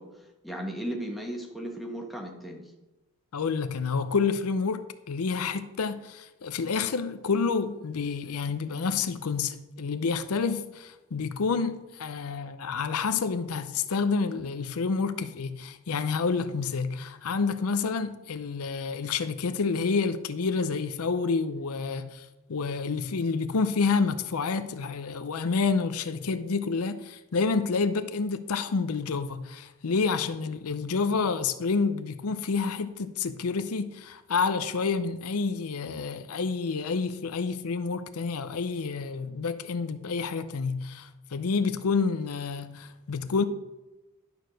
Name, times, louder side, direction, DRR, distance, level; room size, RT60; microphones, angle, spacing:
voice 1, 0.0-2.6, right 1 dB, ahead, 1.4 m, -36 dB
voice 2, 3.3-4.8 5.1-43.4, left 4 dB, 75° left, 0.6 m, -29 dB
11.0 x 4.7 x 6.2 m
head